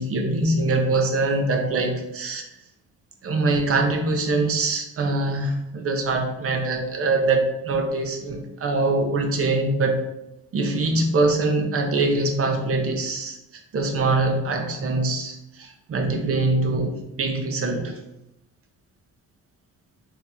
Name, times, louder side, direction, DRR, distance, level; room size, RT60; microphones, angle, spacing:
voice 1, 0.0-2.4 3.2-10.0 10.5-13.4 13.7-18.0, right 2 dB, 50° right, 3 dB, 0.8 m, -23 dB
3.6 x 2.9 x 3.6 m, 0.86 s
cardioid pair, 90°, 30 cm